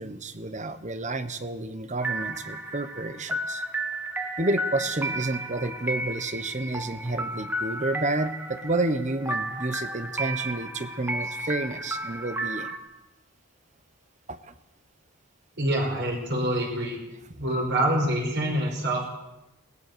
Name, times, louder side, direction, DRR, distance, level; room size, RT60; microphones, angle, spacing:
voice 1, 0.0-3.6 4.4-12.7 14.3-14.5 17.3-17.4, right 2 dB, 35° right, 12 dB, 1.2 m, -30 dB
sound 1, 2.0-12.8, right 1 dB, 10° right, 1.6 m, -33 dB
voice 2, 15.6-17.0 17.4-19.1, right 1 dB, 50° right, 0 dB, 5.9 m, -26 dB
20.5 x 19.0 x 7.0 m, 0.97 s
head